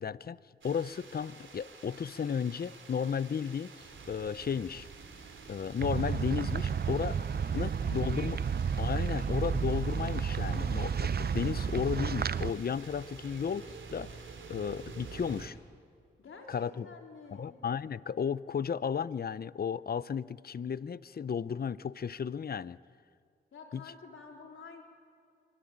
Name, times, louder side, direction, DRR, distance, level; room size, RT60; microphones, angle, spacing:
voice 1, 0.0-4.9 5.5-7.3 7.5-8.4 8.8-14.1 14.5-15.6 16.5-16.9 17.3-22.8 23.7-23.8, left 7 dB, 45° left, 18 dB, 0.6 m, -34 dB
sound 1, 0.6-15.5, right 4 dB, 65° right, 3.2 m, -49 dB
sound 2, 5.8-12.5, right 6 dB, 50° right, 0.7 m, -31 dB
voice 2, 7.8-8.4 16.2-17.5 23.5-24.8, left 4 dB, 75° left, 1 dB, 3.9 m, -50 dB
24.0 x 22.5 x 8.8 m, 2.3 s
cardioid pair, 55°, 21 cm